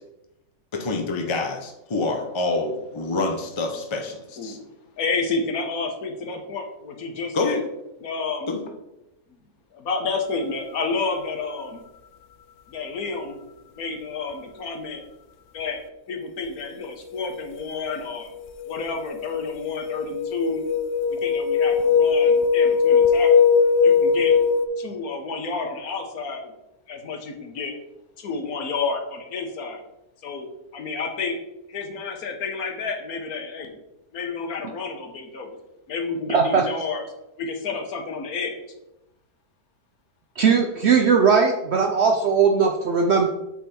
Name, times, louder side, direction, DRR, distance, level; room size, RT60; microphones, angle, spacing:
voice 1, 0.7-4.6 7.3-7.6 8.5-8.6, left 3 dB, 35° left, 3 dB, 0.4 m, -27 dB
voice 2, 5.0-7.6 8.0-8.5 9.3-9.4 9.7-11.8 12.7-13.4 13.7-15.0 15.5-15.8 16.1-18.3 18.7-20.6 21.2-23.5 23.8-24.3 24.8-26.5 26.9-27.7 28.2-29.8 30.2-31.4 31.7-33.7 34.1-35.5 35.9-37.0 37.4-38.6, left 4 dB, 65° left, 4 dB, 1.4 m, -30 dB
sound 1, 17.6-17.9 18.4-24.7, left 6 dB, 85° left, 0.6 m, -20 dB
voice 3, 36.3-36.6 40.4-43.3, right 5 dB, 60° right, 3 dB, 0.7 m, -19 dB
8.2 x 4.1 x 4.2 m, 0.91 s
omnidirectional pair, 1.7 m